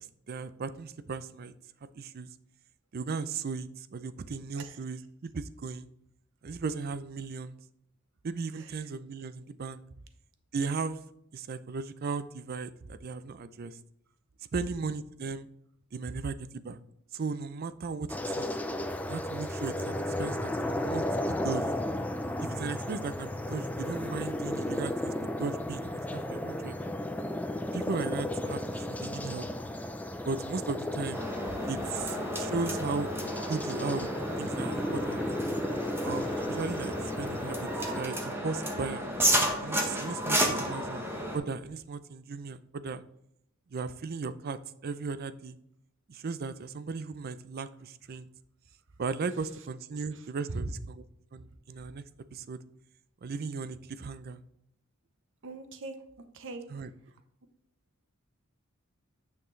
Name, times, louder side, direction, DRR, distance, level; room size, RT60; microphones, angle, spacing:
voice 1, 0.0-1.5 1.9-2.3 2.9-5.9 6.4-7.6 8.2-9.8 10.5-11.0 11.3-13.8 14.5-15.5 15.9-16.8 17.1-18.5 19.1-21.6 22.4-26.8 27.7-28.6 28.9-29.5 30.3-31.2 31.7-33.1 33.5-34.1 34.4-35.2 36.0-37.7 37.9-39.1 39.6-43.0 43.7-45.6 46.1-48.3 49.0-51.0 51.3-52.0 52.3-52.6 53.2-54.4 56.7-56.9, right 4 dB, 45° right, 14 dB, 0.4 m, -36 dB
sound 1, 18.1-38.0, left 1 dB, 5° left, 0.4 m, -34 dB
sound 2, 31.1-41.4, right 1 dB, 10° right, 1.1 m, -32 dB
voice 2, 55.4-56.0 56.3-56.6, right 3 dB, 65° right, 8 dB, 0.8 m, -38 dB
9.3 x 5.8 x 3.2 m, 0.76 s
head